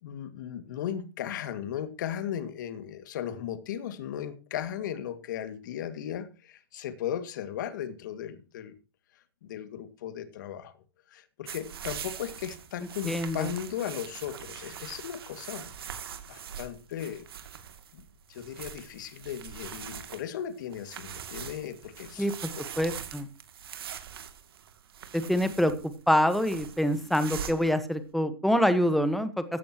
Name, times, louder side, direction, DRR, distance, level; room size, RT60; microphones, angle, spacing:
voice 1, 0.0-8.8 9.1-15.7 16.3-17.3 17.9-18.0 18.3-22.3 22.5-22.6, left 10 dB, 50° left, 2.2 m, -36 dB
sound 1, 11.5-27.8, right 8 dB, 70° right, 2.6 m, -42 dB
voice 2, 13.0-13.5 22.2-22.3 22.8-23.3 25.1-25.7 26.1-29.4, equal, ahead, 1.3 m, -25 dB
16.0 x 13.5 x 3.0 m
hypercardioid pair, 160°, 13 cm